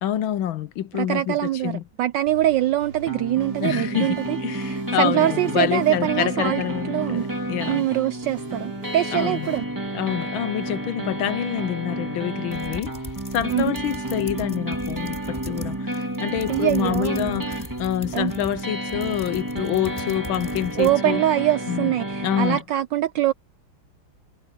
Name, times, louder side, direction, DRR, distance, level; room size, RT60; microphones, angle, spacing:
voice 1, 0.0-1.8 3.6-7.8 9.1-9.5 9.9-13.0 13.3-21.2 21.7-21.9 22.2-22.6, left 11 dB, 70° left, 1.5 m, -27 dB
voice 2, 0.9-1.7 2.0-6.6 6.9-7.2 7.7-9.7 13.5-13.7 16.5-17.3 18.1-18.3 20.8-23.3, right 13 dB, 75° right, 1.0 m, -23 dB
sound 1, 2.3-9.6, right 2 dB, 40° right, 4.9 m, -44 dB
sound 2, 3.1-22.6, right 1 dB, 10° right, 2.3 m, -31 dB
sound 3, 12.5-21.0, left 1 dB, 15° left, 4.5 m, -40 dB
omnidirectional pair, 2.4 m